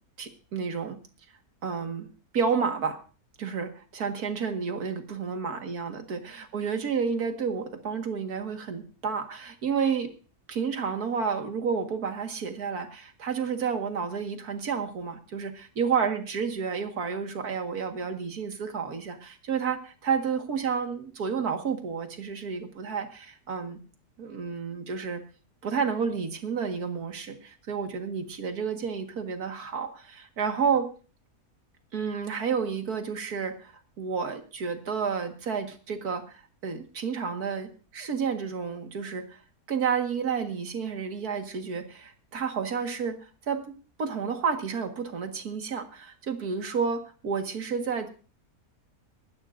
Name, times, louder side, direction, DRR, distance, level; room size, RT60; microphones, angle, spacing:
voice 1, 0.2-1.0 1.6-2.1 2.3-3.0 3.4-10.1 10.5-23.8 24.2-25.2 25.6-30.9 31.9-33.7 34.0-39.4 39.7-43.6 44.0-48.1, right 6 dB, 80° right, 6 dB, 2.2 m, -30 dB
24.5 x 12.0 x 2.6 m, 0.37 s
omnidirectional pair, 1.6 m